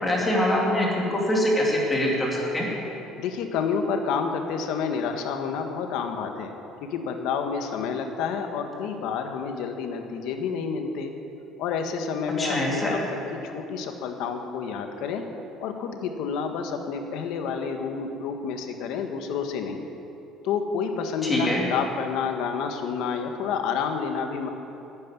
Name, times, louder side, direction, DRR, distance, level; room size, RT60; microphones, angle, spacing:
voice 1, 0.0-2.7 12.4-13.0 21.2-21.7, left 1 dB, 15° left, -3 dB, 2.6 m, -24 dB
voice 2, 3.2-6.5 6.8-11.1 11.6-15.3 15.6-19.9 20.4-24.5, left 6 dB, 70° left, 5 dB, 1.5 m, -29 dB
12.0 x 9.7 x 9.8 m, 2.9 s
cardioid pair, 165°, 0 cm